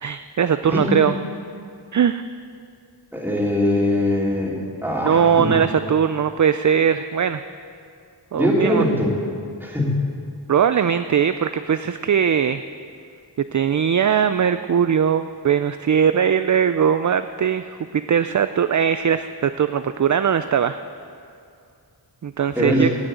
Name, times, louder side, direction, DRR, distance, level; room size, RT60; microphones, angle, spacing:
voice 1, 0.0-1.1 1.9-2.2 5.0-7.4 8.3-8.9 10.5-12.6 13.5-17.7 18.1-20.8 22.2-22.9, right 8 dB, 45° right, 11 dB, 0.4 m, -20 dB
voice 2, 0.7-1.1 3.1-5.8 8.3-9.1 9.6-10.0 22.5-22.8, left 1 dB, 5° right, -4 dB, 3.3 m, -22 dB
17.5 x 6.3 x 9.0 m, 2.4 s
wide cardioid pair, 65°, 43 cm